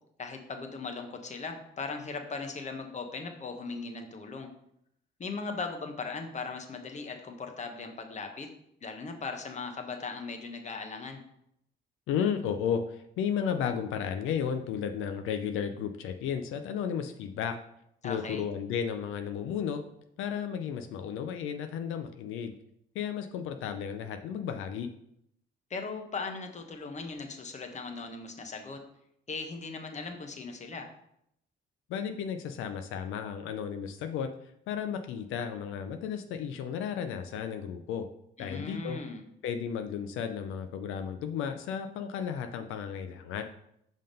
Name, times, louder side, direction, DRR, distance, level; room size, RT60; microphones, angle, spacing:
voice 1, 0.2-4.5 5.2-8.5 8.8-11.2 18.0-18.4 25.7-28.8 29.3-30.9 38.4-39.2, left 4 dB, 35° left, 5 dB, 1.0 m, -38 dB
voice 2, 12.1-17.6 18.0-19.8 20.2-22.5 22.9-24.9 31.9-34.3 34.7-38.1 38.4-39.0 39.4-43.4, left 7 dB, 90° left, 7 dB, 0.5 m, -33 dB
5.6 x 3.6 x 5.3 m, 0.75 s
cardioid pair, 90°, 20 cm